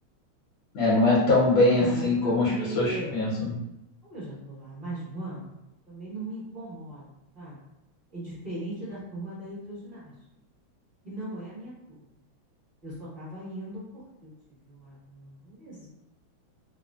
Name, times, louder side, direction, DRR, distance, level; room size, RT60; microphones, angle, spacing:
voice 1, 0.7-3.5, left 2 dB, 75° left, -6 dB, 1.5 m, -22 dB
voice 2, 1.8-3.1 4.0-5.5 5.9-7.0 7.3-7.6 8.1-10.1 11.0-12.0 12.8-14.3 14.6-15.9, right 1 dB, 30° right, -12 dB, 1.1 m, -39 dB
3.8 x 2.1 x 2.2 m, 0.89 s
omnidirectional pair, 2.3 m